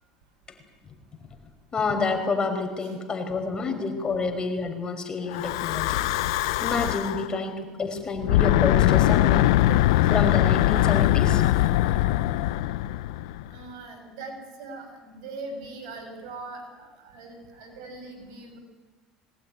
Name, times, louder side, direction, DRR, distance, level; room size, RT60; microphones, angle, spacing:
voice 1, 1.7-6.0 6.6-9.6 10.0-11.4 11.9-12.0, left 4 dB, 30° left, 5 dB, 5.2 m, -28 dB
Breathing / Wind, 5.3-7.3 8.2-13.6, left 15 dB, 85° left, 0.7 m, -22 dB
voice 2, 13.5-18.6, right 3 dB, 75° right, 4 dB, 6.9 m, -41 dB
21.0 x 18.5 x 9.9 m, 1.3 s
supercardioid pair, 95°, 3 cm